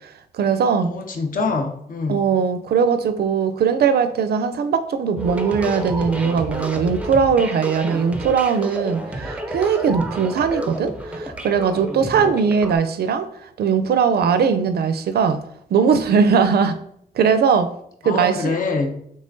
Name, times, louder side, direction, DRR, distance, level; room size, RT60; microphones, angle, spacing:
voice 1, 0.3-0.9 2.1-13.3 13.6-15.4 15.7-16.7 17.2-17.7 18.0-18.5, right 6 dB, 75° right, 9 dB, 0.4 m, -19 dB
voice 2, 0.9-2.2 18.0-19.0, left 3 dB, 60° left, 4 dB, 0.7 m, -25 dB
sound 1, 5.1-12.7, right 1 dB, 10° right, 0.4 m, -30 dB
5.5 x 3.3 x 2.6 m, 0.70 s
wide cardioid pair, 180°, 16 cm